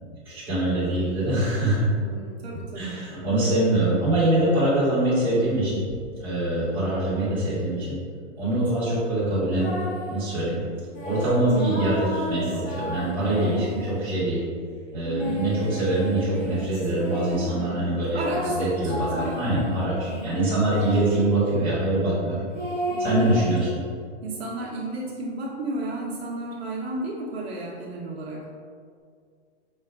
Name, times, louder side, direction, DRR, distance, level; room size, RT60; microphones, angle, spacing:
voice 1, 0.2-1.9 2.7-5.8 6.2-7.9 8.4-9.7 10.1-10.6 11.0-14.4 14.9-18.2 18.5-22.4 23.0-23.7, right 1 dB, 5° right, -11 dB, 1.5 m, -24 dB
voice 2, 1.9-3.4 8.4-8.7 13.2-13.6 15.2-15.6 17.5-19.4 20.1-20.8 22.9-23.5 24.2-28.5, right 2 dB, 60° right, -4 dB, 0.8 m, -34 dB
sound 1, 9.6-10.2 10.9-14.2 15.0-17.6 18.2-21.3 22.5-23.7, equal, 20° left, 0.8 m, -33 dB
5.4 x 2.3 x 3.4 m, 2.1 s
hypercardioid pair, 165°, 35 cm